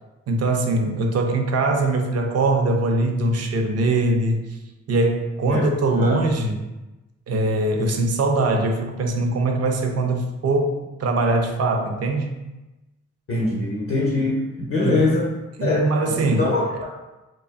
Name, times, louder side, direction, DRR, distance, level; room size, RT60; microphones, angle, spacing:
voice 1, 0.3-4.6 4.9-6.6 7.3-12.5 14.8-15.1 15.6-16.5, right 2 dB, 50° right, 4 dB, 0.5 m, -22 dB
voice 2, 13.3-15.3 15.6-16.9, left 2 dB, 40° left, -5 dB, 0.7 m, -23 dB
2.6 x 2.3 x 2.3 m, 1.1 s
supercardioid pair, 55°, 33 cm